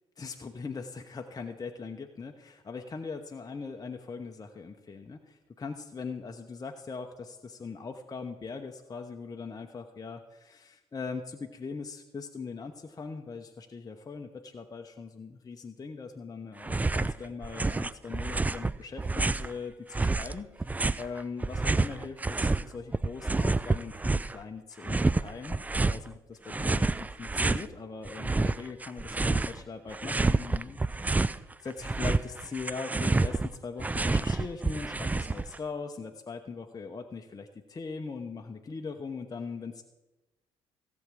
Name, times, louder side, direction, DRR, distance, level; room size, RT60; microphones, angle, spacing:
voice 1, 0.2-20.7 21.0-25.6 25.9-39.8, left 4 dB, 25° left, 3 dB, 0.9 m, -40 dB
sound 1, 16.6-17.1 17.4-19.5 19.9-22.6 22.9-24.4 24.8-26.0 26.5-27.6 28.0-29.6 29.9-31.4 31.7-35.6, right 3 dB, 10° right, 0.3 m, -28 dB
16.0 x 7.2 x 4.9 m, 1.0 s
hypercardioid pair, 50°, 14 cm